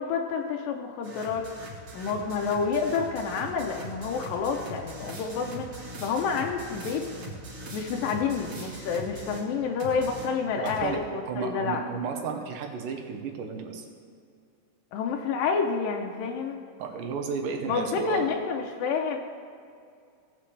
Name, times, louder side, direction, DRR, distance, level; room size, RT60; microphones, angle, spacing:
voice 1, 0.0-1.5 1.9-7.1 7.7-11.8 14.9-16.6 17.7-19.2, left 5 dB, 90° left, 2 dB, 2.5 m, -29 dB
sound 1, 1.0-9.5 9.8-10.9, right 1 dB, 40° right, 1.9 m, -41 dB
voice 2, 10.6-13.8 16.8-18.3, right 6 dB, 75° right, 3 dB, 2.5 m, -33 dB
17.5 x 7.6 x 3.3 m, 2.3 s
omnidirectional pair, 3.9 m